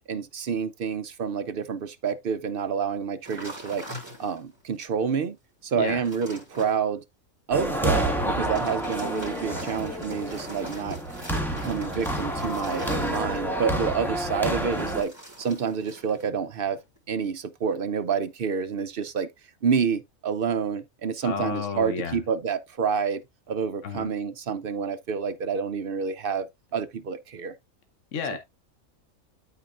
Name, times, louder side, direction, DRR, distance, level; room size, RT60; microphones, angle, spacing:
voice 1, 0.1-3.9 4.2-5.4 5.6-7.0 7.5-11.0 11.5-16.8 17.1-19.3 19.6-23.2 23.5-26.5 26.7-27.5, right 6 dB, 60° right, 0.6 m, -28 dB
sound 1, 3.2-4.6 5.1-5.2 5.6-6.8 8.3-13.6 14.6-16.3 16.6-17.0, right 1 dB, 15° right, 4.2 m, -42 dB
sound 2, 7.5-15.0, right 1 dB, ahead, 1.4 m, -29 dB
voice 2, 21.2-22.2 23.8-24.1 28.1-28.4, left 6 dB, 60° left, 1.2 m, -31 dB
13.0 x 4.4 x 2.4 m
omnidirectional pair, 1.5 m